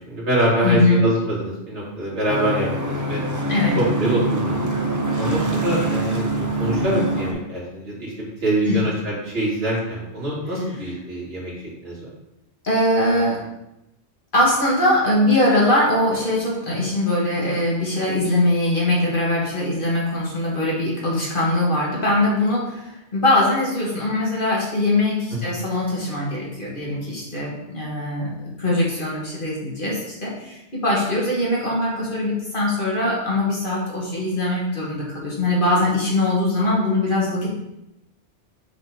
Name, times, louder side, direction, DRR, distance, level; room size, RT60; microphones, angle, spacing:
voice 1, 0.0-3.2 3.8-4.6 5.2-6.2 6.6-11.5 11.8-12.1 25.4-25.5, right 1 dB, 65° right, -6 dB, 2.8 m, -24 dB
voice 2, 0.6-1.0 3.5-3.8 8.6-8.8 12.6-13.4 14.3-37.5, left 1 dB, 45° left, -5 dB, 2.1 m, -21 dB
sound 1, 2.3-7.3, right 2 dB, 15° right, 0.8 m, -24 dB
6.7 x 4.4 x 5.1 m, 0.87 s
omnidirectional pair, 1.2 m